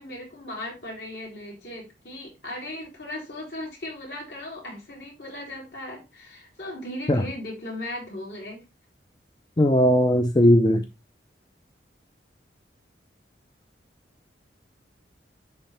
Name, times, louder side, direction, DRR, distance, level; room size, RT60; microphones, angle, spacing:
voice 1, 0.0-8.6, left 1 dB, 65° left, 3.5 m, -37 dB
voice 2, 9.6-10.8, equal, 25° left, 0.5 m, -18 dB
10.0 x 3.5 x 3.3 m
head